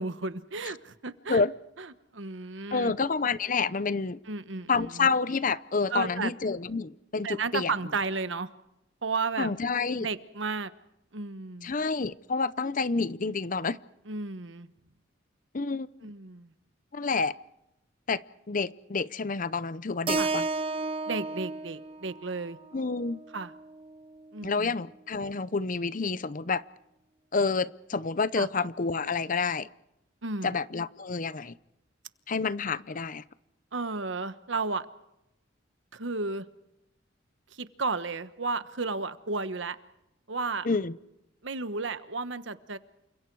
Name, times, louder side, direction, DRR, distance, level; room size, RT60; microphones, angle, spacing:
voice 1, 0.0-1.4 1.8-2.9 4.3-5.1 5.9-6.3 7.2-8.5 9.0-9.5 10.0-10.7 11.1-11.7 14.1-14.7 16.0-16.5 20.2-20.3 21.1-22.6 23.3-23.5 24.3-24.7 28.4-28.5 30.2-30.6 33.7-34.8 35.9-36.4 37.5-39.8 40.3-40.7 41.4-42.8, right 3 dB, 75° right, 1.2 m, -33 dB
voice 2, 2.7-4.2 4.7-7.7 9.4-10.1 11.6-13.8 15.5-15.9 16.9-17.3 18.1-20.4 22.7-23.2 24.4-26.6 27.3-29.7 30.4-31.5 32.3-33.2 40.6-41.0, left 4 dB, 45° left, 0.7 m, -28 dB
Keyboard (musical), 20.1-24.3, right 3 dB, 30° right, 1.0 m, -33 dB
29.0 x 26.0 x 4.7 m
head